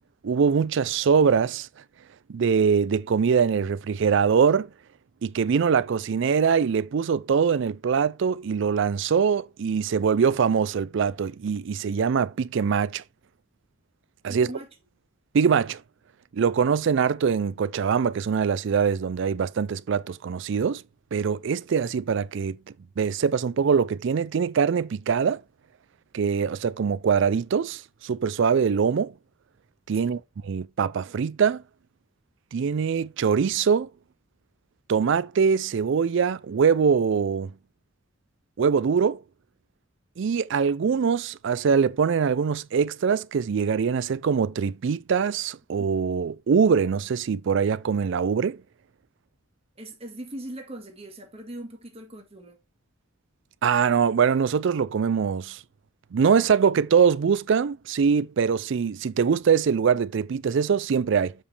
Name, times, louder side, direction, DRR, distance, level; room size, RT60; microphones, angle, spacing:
voice 1, 0.2-1.7 2.3-4.7 5.2-13.0 14.2-14.5 15.3-15.8 16.3-20.8 21.1-22.6 23.0-25.4 26.1-29.1 29.9-31.6 32.5-33.9 34.9-37.5 38.6-39.2 40.2-48.6 53.6-55.6 56.1-61.3, right 6 dB, 60° right, 0.4 m, -23 dB
voice 2, 14.3-14.7 29.9-30.2 49.8-52.6, right 1 dB, 30° right, 1.6 m, -40 dB
7.3 x 5.1 x 3.3 m
head